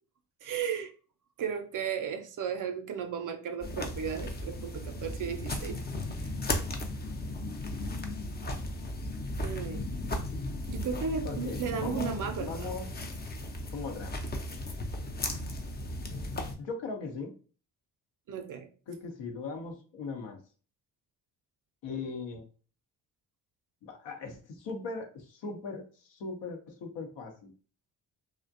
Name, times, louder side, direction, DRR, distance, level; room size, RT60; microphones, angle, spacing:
voice 1, 0.4-0.9 1.4-5.8 6.2-6.3 9.4-10.1 10.7-12.8 18.3-18.7, right 7 dB, 45° right, 0.5 m, -35 dB
sound 1, 3.6-16.5, left 1 dB, 20° left, 0.5 m, -36 dB
voice 2, 11.2-12.9 13.7-14.1 16.6-17.3 18.9-20.4 21.8-22.4 23.8-27.5, left 4 dB, 65° left, 0.8 m, -39 dB
2.4 x 2.1 x 2.5 m
hypercardioid pair, 45°, 46 cm